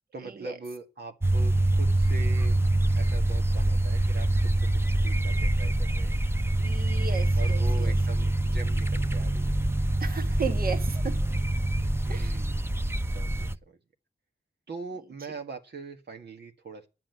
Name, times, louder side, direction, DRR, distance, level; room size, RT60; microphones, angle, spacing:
voice 1, 0.1-2.6 2.9-6.2 7.4-9.6 12.1-13.8 14.7-16.9, right 3 dB, 85° right, 1.7 m, -42 dB
sound 1, 1.2-13.6, right 1 dB, 15° right, 0.8 m, -25 dB
voice 2, 6.6-7.9 10.0-11.2 12.1-12.3, right 5 dB, 60° right, 1.5 m, -34 dB
10.0 x 7.7 x 9.1 m
wide cardioid pair, 65°, 17 cm